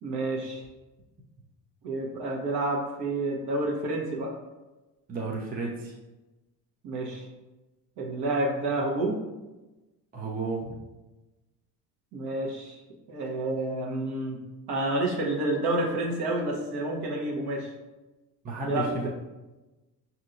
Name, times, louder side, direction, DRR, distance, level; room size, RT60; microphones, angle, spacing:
voice 1, 0.0-0.6 1.8-4.3 6.8-7.3 8.0-9.2 12.1-12.8 13.1-14.4 14.7-17.7 18.6-19.1, right 2 dB, 55° right, -1 dB, 1.1 m, -29 dB
voice 2, 5.1-5.9 10.1-10.8 18.4-19.1, right 3 dB, 20° right, -2 dB, 0.7 m, -33 dB
5.3 x 2.8 x 2.6 m, 1.1 s
hypercardioid pair, 70°, 48 cm